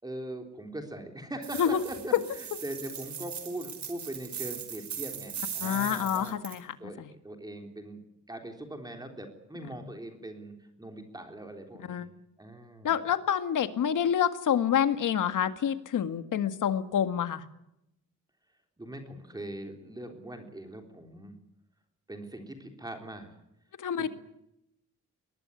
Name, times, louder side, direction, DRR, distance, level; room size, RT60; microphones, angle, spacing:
voice 1, 0.0-6.4 6.8-8.0 8.3-12.1 12.4-13.0 18.8-21.4 22.1-23.3 24.0-24.1, right 1 dB, 10° right, 4 dB, 3.6 m, -41 dB
sound 1, 1.4-6.6, right 8 dB, 60° right, 5.1 m, -39 dB
voice 2, 5.6-6.6 7.0-7.1 11.8-12.1 12.8-17.4 23.8-24.1, left 9 dB, 75° left, 10 dB, 2.0 m, -27 dB
22.0 x 20.5 x 9.7 m, 0.82 s
wide cardioid pair, 160°, 31 cm